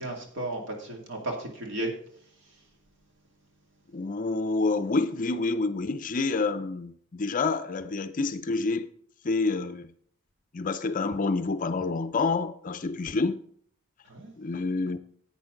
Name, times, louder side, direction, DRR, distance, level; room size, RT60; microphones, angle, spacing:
voice 1, 0.0-1.9 14.1-14.3, right 1 dB, 55° right, 2.4 m, -34 dB
voice 2, 3.9-8.9 9.2-9.9 10.5-13.4 14.4-15.0, left 3 dB, 40° left, 0.5 m, -28 dB
11.5 x 8.6 x 3.8 m
head